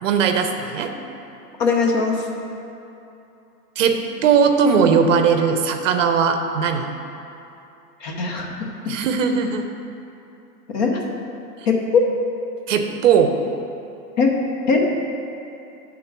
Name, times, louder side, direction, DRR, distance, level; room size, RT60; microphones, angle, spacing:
voice 1, 0.0-0.9 3.8-6.9 8.9-9.6 12.7-13.4, right 6 dB, 55° right, 6 dB, 0.7 m, -18 dB
voice 2, 1.6-2.2 8.0-8.5 10.7-11.0 11.6-11.8 14.2-14.3 14.7-14.8, left 4 dB, 30° left, 0 dB, 0.8 m, -20 dB
8.8 x 3.8 x 5.9 m, 2.8 s
hypercardioid pair, 155°, 47 cm